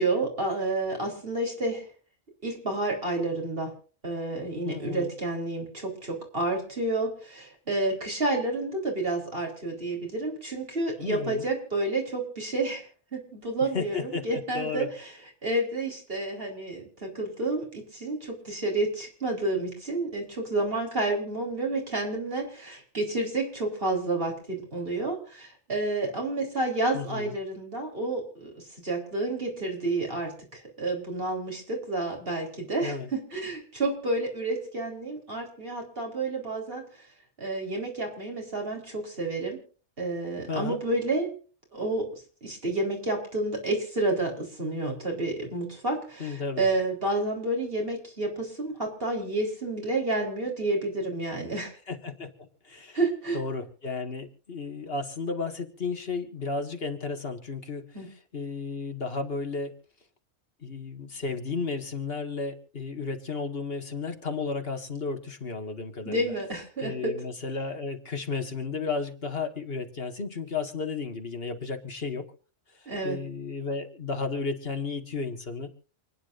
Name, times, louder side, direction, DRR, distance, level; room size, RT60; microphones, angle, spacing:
voice 1, 0.0-1.9 2.4-3.7 4.0-15.1 15.4-36.8 37.4-39.6 40.0-41.3 41.7-51.7 52.9-53.4 57.9-58.1 66.0-67.1 72.9-73.2, right 2 dB, 55° right, 1 dB, 4.6 m, -30 dB
voice 2, 4.7-5.1 11.0-11.5 13.7-14.9 26.9-27.3 32.8-33.1 40.5-40.8 46.2-46.7 51.9-53.0 53.3-57.9 58.3-59.7 60.6-66.3 66.8-72.3 73.0-75.7, left 4 dB, 55° left, 5 dB, 2.1 m, -33 dB
28.5 x 9.9 x 2.6 m, 0.39 s
omnidirectional pair, 1.2 m